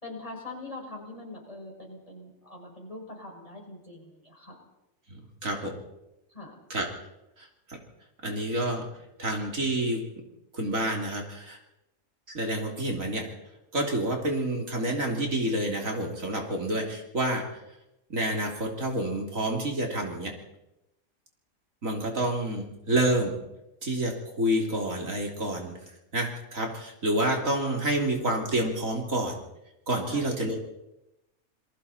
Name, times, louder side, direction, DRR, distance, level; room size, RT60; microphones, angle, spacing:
voice 1, 0.0-4.6 6.3-6.5 30.0-30.3, left 2 dB, 25° left, -2 dB, 6.2 m, -42 dB
voice 2, 5.1-5.7 6.7-6.9 7.4-7.5 8.2-8.8 9.2-10.0 10.5-11.6 12.3-13.2 13.7-17.6 18.1-20.3 21.8-23.3 23.8-25.8 26.1-29.4 29.9-30.7, right 1 dB, 70° right, 1 dB, 3.7 m, -28 dB
28.5 x 22.0 x 4.3 m, 0.91 s
omnidirectional pair, 1.5 m